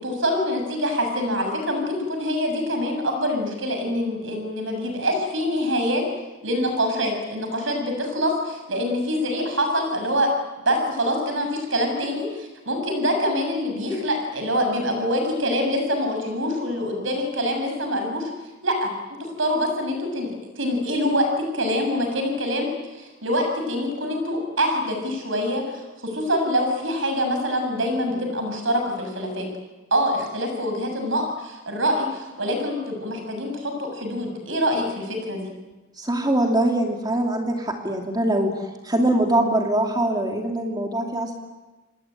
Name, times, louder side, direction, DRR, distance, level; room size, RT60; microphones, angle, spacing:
voice 1, 0.0-6.0 6.4-10.3 10.6-18.3 18.6-18.9 19.2-29.5 29.9-35.5, equal, 70° right, 5 dB, 7.1 m, -25 dB
voice 2, 36.0-38.5 38.8-41.4, right 1 dB, 20° right, 2 dB, 2.7 m, -23 dB
28.0 x 20.0 x 9.1 m, 1.2 s
head